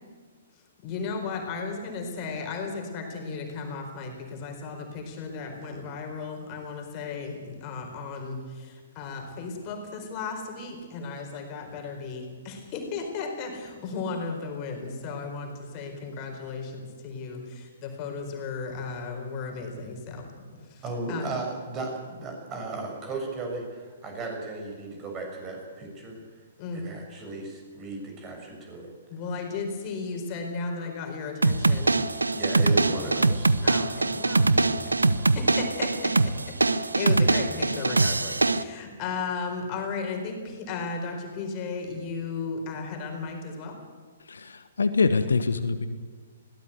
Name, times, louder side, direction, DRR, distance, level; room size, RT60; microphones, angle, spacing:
voice 1, 0.5-21.4 26.6-26.9 29.1-32.0 32.9-33.1 33.6-43.8, left 4 dB, 30° left, 3 dB, 4.4 m, -35 dB
voice 2, 20.8-26.2 26.7-28.9 32.4-33.5, right 3 dB, 25° right, 1 dB, 6.9 m, -35 dB
sound 1, 31.4-38.6, right 3 dB, 80° right, 0.9 m, -23 dB
voice 3, 44.3-45.9, left 4 dB, 70° left, 10 dB, 1.3 m, -24 dB
21.0 x 17.0 x 8.2 m, 1.6 s
figure-of-eight pair, 120°, 0 cm